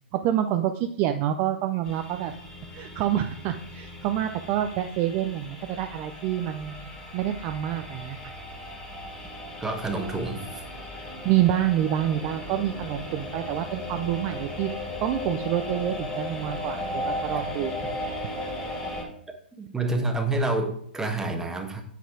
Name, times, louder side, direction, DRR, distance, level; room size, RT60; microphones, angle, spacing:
voice 1, 0.1-2.3 2.7-8.3 11.2-14.7 15.0-17.8, right 11 dB, 35° right, 7 dB, 0.4 m, -27 dB
sound 1, 1.8-19.0, left 1 dB, 15° left, 2.2 m, -36 dB
voice 2, 9.6-10.6 17.3-17.4 19.6-21.8, right 2 dB, 10° right, 4 dB, 1.1 m, -28 dB
8.2 x 4.1 x 4.7 m, 0.65 s
hypercardioid pair, 120°, 6 cm